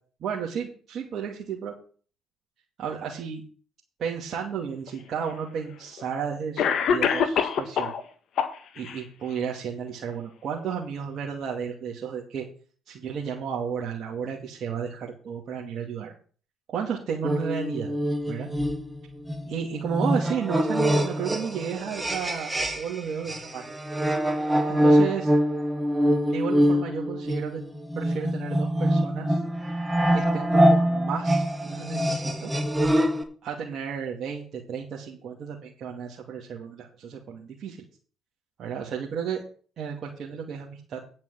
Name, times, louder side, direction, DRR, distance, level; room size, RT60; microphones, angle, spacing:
voice 1, 0.2-1.7 2.8-3.4 4.0-7.9 8.7-12.5 12.9-16.1 16.7-17.9 18.3-18.5 19.5-23.7 24.7-25.3 26.3-27.6 28.0-29.4 30.1-32.5 33.4-37.8 38.6-39.4 39.8-41.0, right 7 dB, 55° right, -3 dB, 2.4 m, -33 dB
Cough, 4.9-5.0 6.0-6.1 6.6-8.0 8.4-9.0, left 7 dB, 60° left, 1.6 m, -24 dB
sound 1, 17.2-23.0 23.3-33.2, equal, 15° right, 2.2 m, -24 dB
9.8 x 6.0 x 7.7 m, 0.41 s
hypercardioid pair, 55°, 0 cm